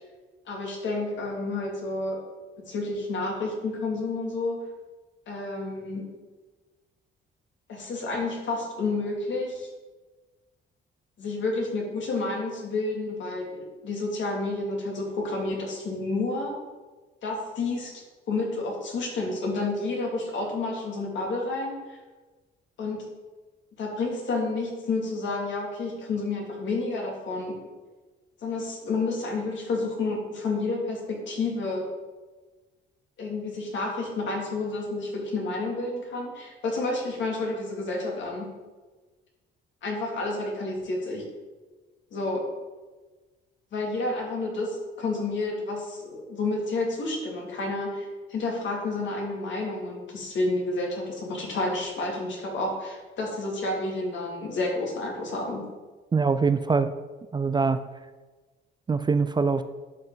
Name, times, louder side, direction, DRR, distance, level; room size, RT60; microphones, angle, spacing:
voice 1, 0.5-2.2 2.7-4.6 5.3-6.1 7.7-9.7 11.2-16.6 17.2-17.9 18.3-22.0 22.8-23.1 23.8-27.6 28.4-31.9 33.2-38.5 39.8-41.3 42.1-42.4 43.7-55.7, left 2 dB, 70° left, -2 dB, 2.5 m, -30 dB
voice 2, 56.1-56.9 57.3-57.8 58.9-59.6, right 4 dB, 20° right, 11 dB, 0.4 m, -23 dB
10.5 x 5.5 x 3.9 m, 1.3 s
cardioid pair, 90°, 20 cm